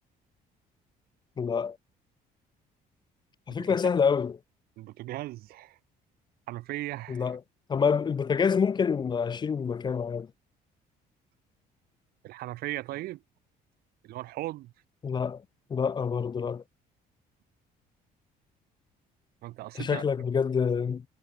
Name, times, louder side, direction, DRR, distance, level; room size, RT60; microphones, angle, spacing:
voice 1, 1.4-1.8 3.5-4.4 7.1-7.4 7.7-10.3 15.0-15.4 15.7-16.6 19.7-21.0, left 6 dB, 25° left, 0.4 m, -27 dB
voice 2, 4.8-5.8 6.5-7.3 12.2-13.2 14.0-14.7 19.4-20.0, right 17 dB, 65° right, 0.4 m, -37 dB
cardioid pair, 110°, 17 cm